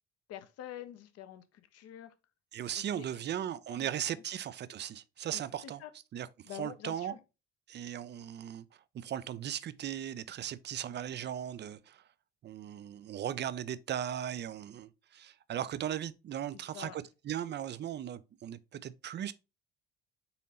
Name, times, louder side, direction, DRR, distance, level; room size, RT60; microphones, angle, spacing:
voice 1, 0.3-2.1 2.8-3.0 3.7-3.9 5.3-5.9 6.4-7.2 16.5-17.0, left 11 dB, 50° left, 0.9 m, -47 dB
voice 2, 2.5-5.8 6.1-6.3 6.5-7.1 7.7-8.7 8.9-12.0 12.4-19.3, right 10 dB, 35° right, 0.5 m, -37 dB
5.6 x 4.1 x 4.1 m
figure-of-eight pair, 55°, 32 cm